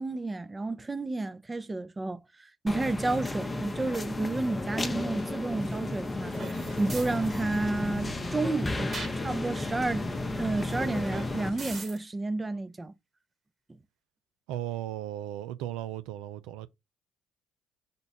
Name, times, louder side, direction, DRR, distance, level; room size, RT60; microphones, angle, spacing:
voice 1, 0.0-10.1 10.4-12.9, right 2 dB, 20° right, 0.5 m, -31 dB
sound 1, 2.7-11.5, left 2 dB, 20° left, 0.7 m, -34 dB
sound 2, 4.9-11.8, left 5 dB, 55° left, 0.6 m, -44 dB
sound 3, 6.3-12.0, right 3 dB, 45° right, 1.5 m, -42 dB
voice 2, 14.5-16.7, right 13 dB, 80° right, 0.3 m, -36 dB
5.2 x 2.3 x 4.2 m
hypercardioid pair, 60°, 0 cm